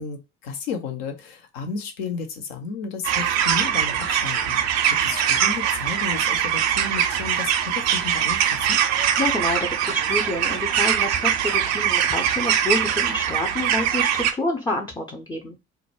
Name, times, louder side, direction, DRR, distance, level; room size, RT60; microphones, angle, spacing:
voice 1, 0.0-4.6 4.9-8.8, left 5 dB, 75° left, 0.7 m, -33 dB
sound 1, 3.0-14.3, right 9 dB, 55° right, 0.5 m, -22 dB
voice 2, 9.2-15.6, left 2 dB, 15° left, 0.5 m, -28 dB
2.4 x 2.1 x 3.0 m
figure-of-eight pair, 55°, 32 cm